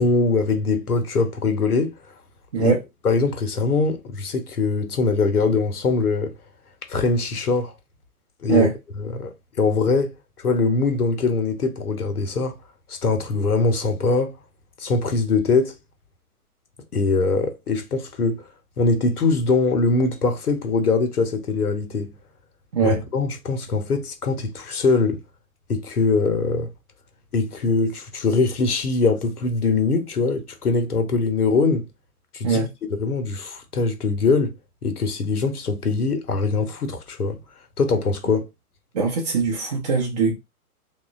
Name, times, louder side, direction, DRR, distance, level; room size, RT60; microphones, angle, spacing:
voice 1, 0.0-1.9 2.6-2.7 3.0-6.3 6.9-7.7 8.4-8.7 9.0-12.6 12.9-14.3 14.8-15.7 16.9-18.4 18.8-22.1 22.8-25.2 25.7-26.7 27.3-31.8 32.3-32.6 32.9-34.5 34.8-37.4 37.8-38.4, left 4 dB, 80° left, 0.7 m, -22 dB
voice 2, 38.9-40.3, right 4 dB, 30° right, 0.5 m, -21 dB
3.0 x 2.1 x 2.4 m
figure-of-eight pair, 115°, 45 cm